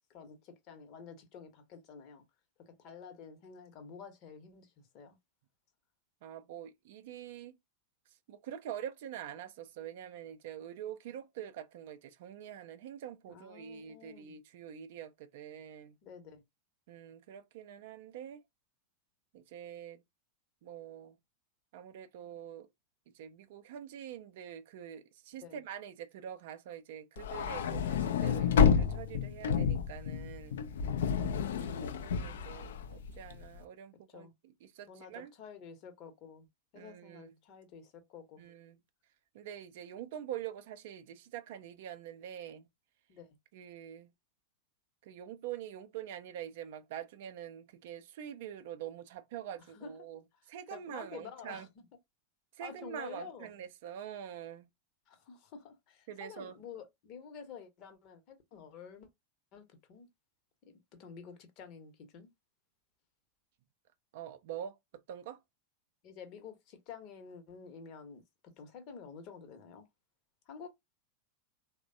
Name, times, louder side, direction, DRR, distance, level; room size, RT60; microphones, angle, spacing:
voice 1, 0.1-2.2 2.7-5.2 13.3-14.4 16.0-16.4 25.4-25.6 34.1-34.3 34.9-36.5 36.7-38.4 43.1-43.4 49.7-49.9 50.7-51.8 52.6-53.5 55.1-59.1 59.5-60.1 60.9-62.3 66.0-68.2 68.6-69.9 70.5-70.7, left 6 dB, 40° left, 0.8 m, -50 dB
voice 2, 6.2-7.6 8.3-16.0 16.9-18.4 19.3-20.0 20.6-21.2 21.7-22.7 23.1-30.6 31.3-35.3 36.7-37.3 38.4-38.8 39.3-42.7 43.5-44.1 45.0-50.2 50.5-51.7 52.5-54.7 56.1-56.6 64.1-65.4, right 10 dB, 55° right, 0.4 m, -45 dB
sound 1, 27.2-33.5, left 6 dB, 60° left, 0.3 m, -30 dB
3.2 x 2.1 x 2.5 m
figure-of-eight pair, 90°, 0 cm